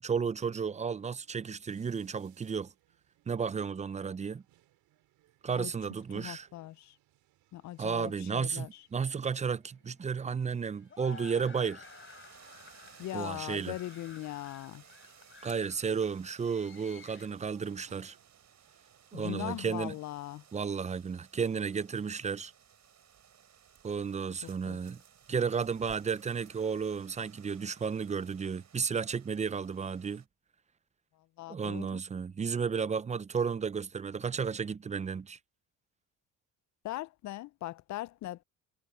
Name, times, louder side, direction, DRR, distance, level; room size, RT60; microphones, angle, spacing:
voice 1, 0.0-2.7 3.3-4.4 5.4-6.5 7.8-11.8 13.1-13.7 15.4-18.2 19.1-19.9 20.5-22.5 23.8-25.0 25.3-30.2 31.5-35.4, right 6 dB, 20° right, 0.5 m, -33 dB
sound 1, 0.5-19.5, right 16 dB, 75° right, 3.3 m, -70 dB
voice 2, 6.1-7.0 7.5-8.8 13.0-14.8 19.1-20.4 24.4-24.8 31.4-32.0 36.8-38.4, left 15 dB, 50° left, 0.5 m, -40 dB
sound 2, 9.6-17.3, left 6 dB, 35° left, 4.7 m, -53 dB
sound 3, 11.8-30.3, right 8 dB, 50° right, 5.8 m, -59 dB
supercardioid pair, 90°, 36 cm